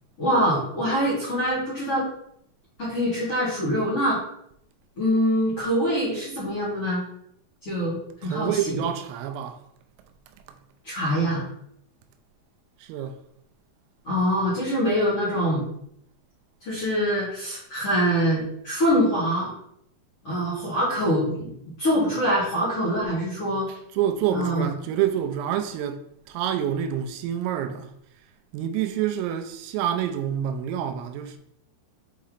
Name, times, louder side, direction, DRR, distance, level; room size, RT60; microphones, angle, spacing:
voice 1, 0.2-2.1 2.8-4.2 5.0-7.0 7.6-8.8 10.8-11.5 14.0-15.7 16.6-19.5 20.2-23.7 24.3-24.7, equal, 55° left, 1.7 m, -24 dB
voice 2, 8.2-9.6 12.8-13.1 23.7-26.0 26.3-27.9 28.5-31.4, right 10 dB, 85° right, 3.3 m, -27 dB
8.2 x 3.2 x 3.9 m
omnidirectional pair, 5.9 m